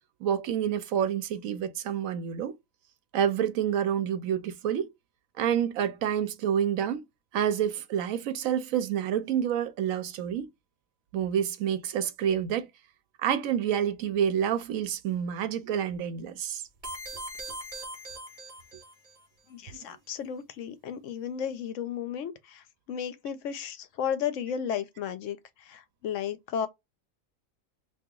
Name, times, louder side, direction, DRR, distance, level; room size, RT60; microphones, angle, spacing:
voice 1, 0.2-2.5 3.1-4.9 5.4-7.0 7.3-10.5 11.1-12.7 13.2-16.6, right 9 dB, 80° right, 1.1 m, -28 dB
sound 1, 16.8-19.2, right 1 dB, 30° right, 1.2 m, -40 dB
voice 2, 19.5-26.7, left 8 dB, 75° left, 0.9 m, -34 dB
2.9 x 2.6 x 3.7 m
omnidirectional pair, 1.4 m